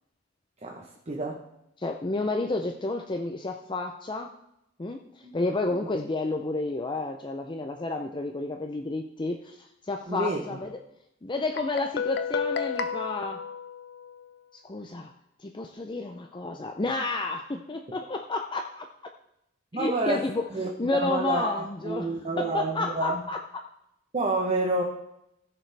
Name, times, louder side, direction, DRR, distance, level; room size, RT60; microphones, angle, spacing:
voice 1, 0.6-1.5 5.2-5.3 10.1-10.6 19.7-23.3 24.1-24.8, right 2 dB, 35° right, 1 dB, 1.0 m, -29 dB
voice 2, 1.8-4.3 4.8-5.0 5.3-10.8 11.2-13.4 14.6-15.1 15.4-18.9 19.7-23.6, left 3 dB, 25° left, 4 dB, 0.5 m, -31 dB
Guitar, 11.6-14.4, left 6 dB, 55° left, 0.7 m, -32 dB
15.5 x 6.7 x 3.4 m, 0.83 s
head